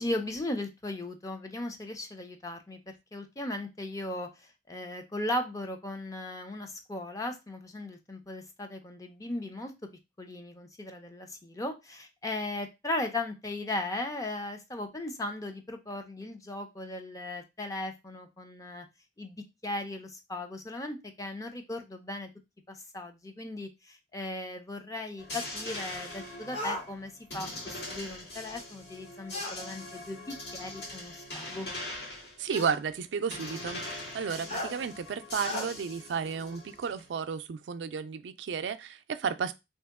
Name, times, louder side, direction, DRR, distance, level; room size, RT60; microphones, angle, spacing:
voice 1, 0.0-2.8 3.1-4.3 4.7-9.7 10.2-18.9 19.2-22.3 22.7-31.7, left 1 dB, 20° left, 0.5 m, -37 dB
sound 1, 25.2-37.1, left 1 dB, 65° left, 1.6 m, -42 dB
sound 2, 26.5-26.8 29.3-29.6 30.8-30.9 32.5-32.8 34.5-34.7 35.4-35.7, left 1 dB, 35° left, 0.9 m, -35 dB
voice 2, 32.4-39.5, right 6 dB, 90° right, 0.4 m, -33 dB
2.9 x 2.8 x 3.5 m
head